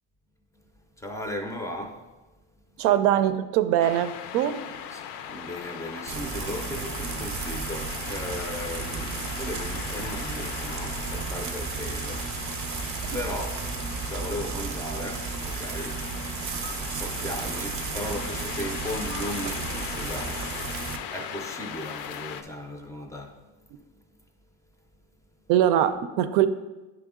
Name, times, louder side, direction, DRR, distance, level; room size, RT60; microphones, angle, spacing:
voice 1, 0.9-2.1 2.7-2.8 4.9-16.4 16.8-23.5 25.4-25.5, left 1 dB, 10° left, 0.4 m, -37 dB
voice 2, 2.8-4.6 25.5-26.5, right 11 dB, 85° right, 0.5 m, -22 dB
sound 1, 3.8-22.4, left 9 dB, 75° left, 0.5 m, -38 dB
Frying (food), 6.1-21.0, right 6 dB, 40° right, 0.5 m, -34 dB
9.8 x 3.4 x 3.6 m
cardioid pair, 150°, 34 cm